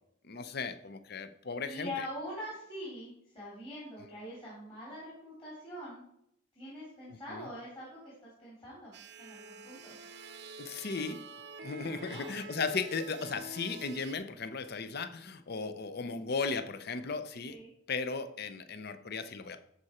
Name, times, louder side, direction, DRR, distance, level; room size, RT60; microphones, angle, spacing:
voice 1, 0.2-1.9 7.1-7.5 10.6-11.2 11.6-17.6 17.9-19.6, left 4 dB, 45° left, 11 dB, 0.6 m, -36 dB
voice 2, 1.6-6.0 6.5-10.0 11.8-12.4 17.5-17.7, left 1 dB, 25° left, -7 dB, 3.0 m, -44 dB
sound 1, 8.9-14.2, right 2 dB, 50° right, 0.6 m, -47 dB
13.0 x 4.9 x 4.3 m, 0.75 s
head